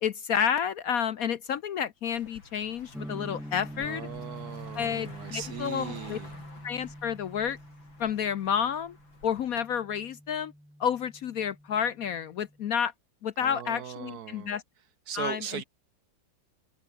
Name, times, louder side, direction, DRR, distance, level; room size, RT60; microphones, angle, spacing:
voice 1, 0.0-4.1 4.7-6.2 6.6-7.6 8.0-9.0 9.2-10.5 10.8-12.9 13.2-14.6 15.1-15.6, left 8 dB, 60° left, 1.0 m, -30 dB
Car passing by, 2.1-9.6, left 3 dB, 85° left, 6.8 m, -50 dB
sound 1, 2.9-12.7, equal, ahead, 2.1 m, -45 dB
voice 2, 3.8-6.4 13.4-14.5 15.1-15.6, right 9 dB, 65° right, 1.1 m, -39 dB
omnidirectional pair, 2.1 m